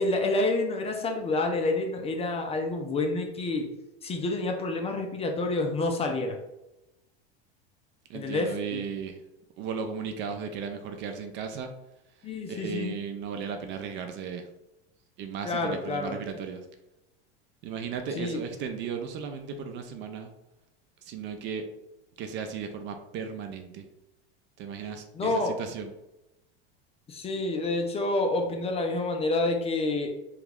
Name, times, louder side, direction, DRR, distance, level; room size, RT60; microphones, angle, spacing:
voice 1, 0.0-3.7 4.0-6.4 8.1-8.8 12.2-12.9 15.4-16.2 18.2-18.4 25.1-25.5 27.1-30.1, left 2 dB, 20° left, 3 dB, 0.4 m, -28 dB
voice 2, 8.1-9.2 9.6-11.7 12.2-14.5 15.2-16.7 17.6-20.3 21.0-21.7 22.2-23.8 24.6-25.9, right 6 dB, 40° right, 6 dB, 0.4 m, -36 dB
3.0 x 2.3 x 3.5 m, 0.94 s
hypercardioid pair, 110°, 30 cm